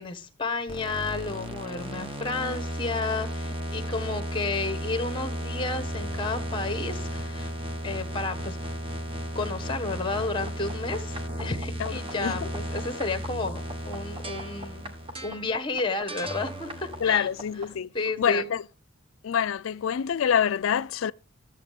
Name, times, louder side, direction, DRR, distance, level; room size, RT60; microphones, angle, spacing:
voice 1, 0.0-7.5 7.8-8.6 9.3-14.9 15.2-17.3 17.5-17.7 17.9-18.5, left 3 dB, 25° left, 1.2 m, -32 dB
sound 1, 0.7-17.8, right 1 dB, 25° right, 1.2 m, -34 dB
voice 2, 11.8-12.4 17.0-17.9 18.2-18.6 19.2-21.1, left 8 dB, 70° left, 0.4 m, -26 dB
13.0 x 7.4 x 3.6 m
head